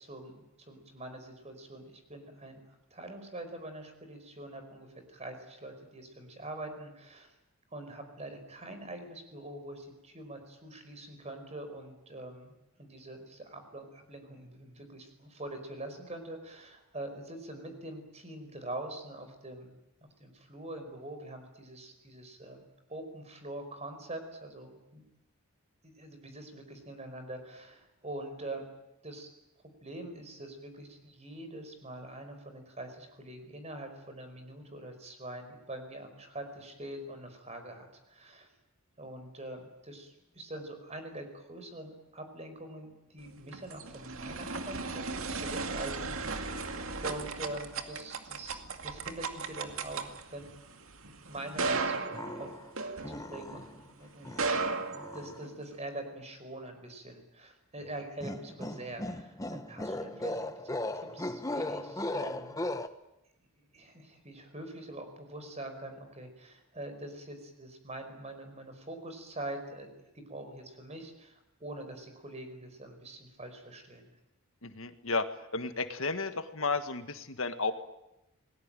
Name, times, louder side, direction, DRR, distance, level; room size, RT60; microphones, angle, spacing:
voice 1, 0.0-2.6 2.9-7.3 7.7-12.5 12.8-19.7 20.2-25.0 25.8-28.7 29.0-29.3 29.8-38.5 39.0-46.5 47.0-50.5 51.0-52.5 53.0-54.5 55.0-60.7 61.1-62.5 63.6-69.9 70.1-74.1, right 1 dB, 30° right, 7 dB, 5.1 m, -44 dB
sound 1, 43.3-53.6 54.2-55.7, right 4 dB, 70° right, 2.3 m, -36 dB
sound 2, 52.1-52.7 53.0-53.8 54.2-55.4 58.2-62.9, left 1 dB, 15° left, 1.1 m, -37 dB
voice 2, 74.6-75.3 75.5-77.7, left 3 dB, 65° left, 9 dB, 1.7 m, -32 dB
28.0 x 20.5 x 9.1 m, 0.91 s
head